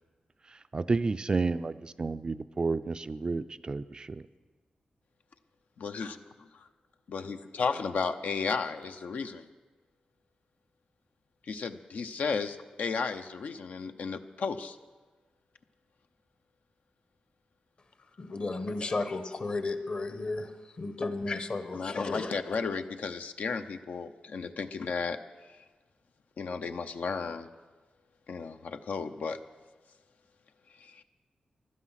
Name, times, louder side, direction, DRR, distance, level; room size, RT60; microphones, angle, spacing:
voice 1, 0.7-4.2, right 3 dB, 35° right, 12 dB, 0.3 m, -31 dB
voice 2, 5.8-6.2 7.1-9.5 11.5-14.8 21.7-25.2 26.4-27.5 28.3-29.4 30.8-31.0, left 5 dB, 75° left, 8 dB, 0.7 m, -34 dB
voice 3, 18.2-20.5 20.8-22.3, left 3 dB, 45° left, 9 dB, 1.0 m, -33 dB
16.0 x 12.0 x 5.7 m, 1.3 s
wide cardioid pair, 135°, 3 cm